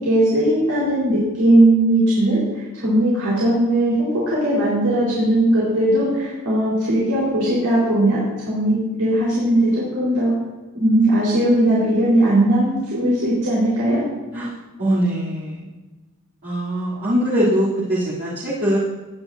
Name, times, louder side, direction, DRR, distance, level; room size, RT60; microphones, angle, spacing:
voice 1, 0.0-10.3 10.7-14.0, right 1 dB, 90° right, -8 dB, 4.5 m, -18 dB
voice 2, 14.8-15.6 16.4-18.8, equal, 50° right, -10 dB, 3.2 m, -21 dB
19.0 x 10.0 x 2.7 m, 1.2 s
head